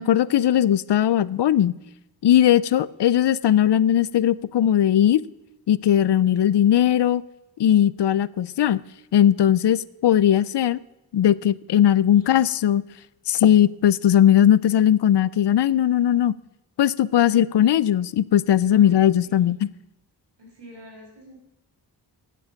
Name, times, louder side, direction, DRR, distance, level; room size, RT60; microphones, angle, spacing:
voice 1, 0.0-1.8 2.2-5.2 5.7-7.2 7.6-8.8 9.1-10.8 11.1-12.8 13.3-16.3 16.8-19.7, left 10 dB, 80° left, 19 dB, 0.6 m, -18 dB
voice 2, 18.7-19.6 20.4-21.4, right 1 dB, 80° right, -2 dB, 6.0 m, -47 dB
14.5 x 9.9 x 6.4 m, 0.94 s
wide cardioid pair, 100°, 41 cm